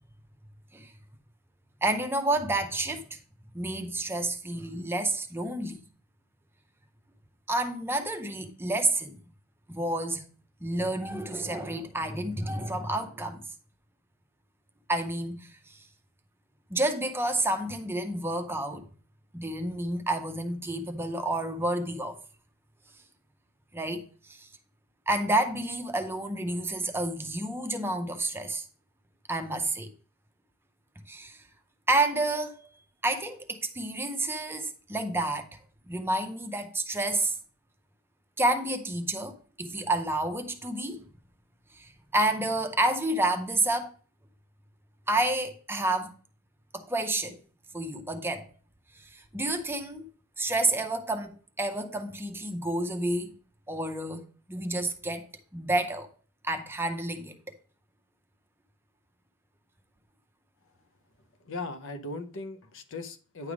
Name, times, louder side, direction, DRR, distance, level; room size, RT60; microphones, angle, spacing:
voice 1, 1.8-3.2 3.5-5.8 7.5-9.2 9.7-10.2 10.6-13.4 14.9-15.5 16.7-18.9 19.3-22.2 23.7-24.0 24.4-24.5 25.1-28.7 29.3-29.9 31.1-31.4 31.9-32.6 33.0-35.5 35.9-37.4 38.4-41.0 41.8-43.9 45.1-46.1 46.7-47.4 47.7-48.5 49.1-50.0 50.4-53.3 53.7-55.3 55.5-56.1 56.4-57.6, right 2 dB, 10° right, 0.6 m, -29 dB
voice 2, 61.4-63.5, left 2 dB, 65° left, 0.7 m, -38 dB
9.5 x 3.4 x 4.8 m
head